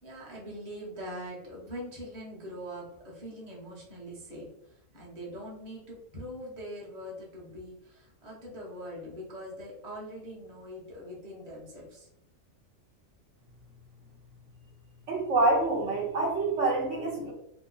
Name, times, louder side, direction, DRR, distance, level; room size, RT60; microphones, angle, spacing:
voice 1, 0.0-12.1, equal, 35° right, -4 dB, 1.0 m, -42 dB
voice 2, 15.1-17.3, right 2 dB, 65° right, -3 dB, 1.1 m, -26 dB
3.0 x 2.1 x 3.8 m, 0.76 s
omnidirectional pair, 1.4 m